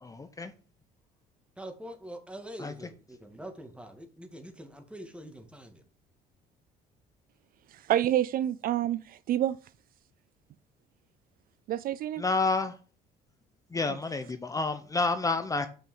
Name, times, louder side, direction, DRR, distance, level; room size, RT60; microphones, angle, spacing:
voice 1, 0.0-0.5 2.6-2.7 12.2-12.7 13.7-15.7, left 3 dB, 20° left, 0.8 m, -29 dB
voice 2, 1.6-5.8, right 1 dB, 5° right, 2.0 m, -44 dB
voice 3, 7.7-9.6 11.7-12.2 13.9-14.0, right 12 dB, 60° right, 0.4 m, -28 dB
6.4 x 5.4 x 7.1 m
cardioid pair, 110°, 17 cm